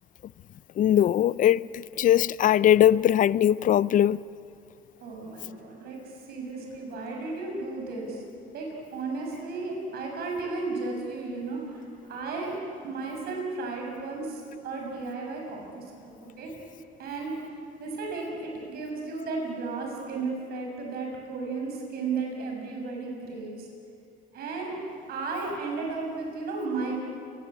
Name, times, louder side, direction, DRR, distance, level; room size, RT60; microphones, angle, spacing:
voice 1, 0.8-4.2, left 11 dB, 50° left, 0.6 m, -21 dB
voice 2, 5.0-8.2 8.5-8.7 8.9-12.6 12.8-16.5 17.0-17.3 17.8-23.7 24.3-24.8 25.1-27.0, right 3 dB, 70° right, 7.5 m, -34 dB
30.0 x 21.0 x 8.5 m
cardioid pair, 110°, 17 cm